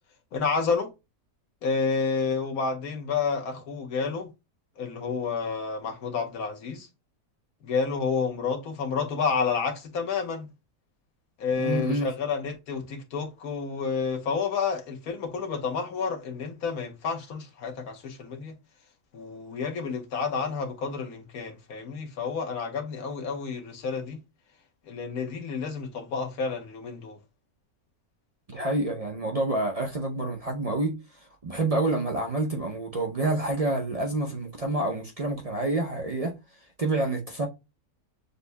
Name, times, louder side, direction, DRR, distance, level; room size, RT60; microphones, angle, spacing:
voice 1, 0.3-0.9 1.6-4.3 4.8-6.9 7.6-10.5 11.4-18.5 19.1-24.2 24.9-27.2, left 5 dB, 70° left, 1.4 m, -30 dB
voice 2, 11.6-12.1 28.5-36.3 36.8-37.5, right 2 dB, 45° right, 0.4 m, -28 dB
6.6 x 2.6 x 2.2 m
omnidirectional pair, 1.6 m